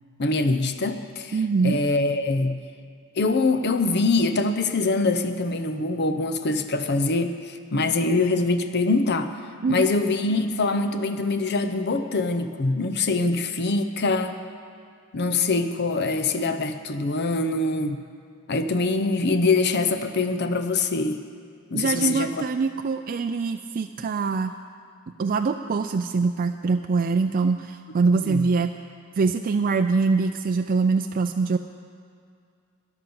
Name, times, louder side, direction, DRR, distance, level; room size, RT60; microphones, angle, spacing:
voice 1, 0.2-1.4 1.6-2.6 3.2-9.3 9.7-14.3 15.1-18.0 18.5-21.2 21.7-22.5 28.1-28.4, left 3 dB, 50° left, 8 dB, 0.7 m, -24 dB
voice 2, 1.3-1.8 9.6-9.9 21.7-24.5 25.2-28.8 29.2-31.6, right 4 dB, 40° right, 7 dB, 0.4 m, -23 dB
13.5 x 10.5 x 6.9 m, 2.3 s
head